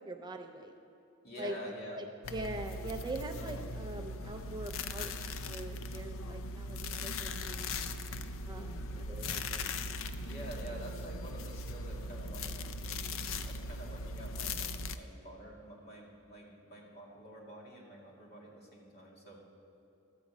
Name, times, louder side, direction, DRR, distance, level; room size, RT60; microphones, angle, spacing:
voice 1, 0.1-0.7 1.4-1.5 1.9-2.0 2.3-5.1 5.5-7.8 8.5-9.7, right 1 dB, 20° right, 4 dB, 0.5 m, -43 dB
voice 2, 1.2-2.1 3.3-3.5 10.2-14.6 14.9-19.4, right 1 dB, 50° left, -2 dB, 2.2 m, -48 dB
sound 1, 2.2-15.0, left 2 dB, 65° left, 0.5 m, -39 dB
12.5 x 5.1 x 8.2 m, 3.0 s
head